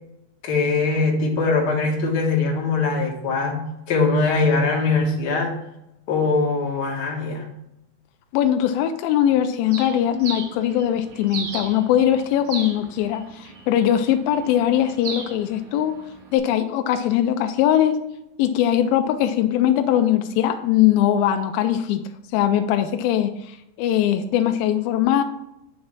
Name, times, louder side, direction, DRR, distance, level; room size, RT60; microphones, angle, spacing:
voice 1, 0.4-5.5 6.1-7.5, left 3 dB, 60° left, -1 dB, 1.0 m, -22 dB
voice 2, 8.3-15.9 16.3-18.0 18.4-22.0 22.3-25.2, left 11 dB, 85° left, 6 dB, 2.3 m, -21 dB
Bird, 9.7-16.4, right 4 dB, 65° right, 2.4 m, -37 dB
8.3 x 3.2 x 6.0 m, 0.85 s
omnidirectional pair, 4.1 m